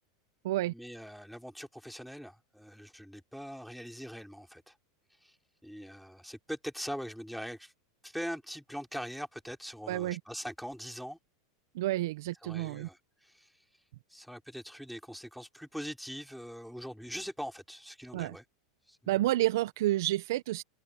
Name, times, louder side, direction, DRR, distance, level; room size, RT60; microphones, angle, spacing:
voice 1, 0.7-4.8 5.2-5.4 5.6-7.7 8.0-11.2 12.4-13.5 14.1-18.4 18.9-19.0, equal, ahead, 6.0 m, -42 dB
voice 2, 9.9-10.2 11.7-12.9 18.1-18.4 19.1-20.6, right 16 dB, 70° right, 1.4 m, -30 dB
hypercardioid pair, 95°, 2 cm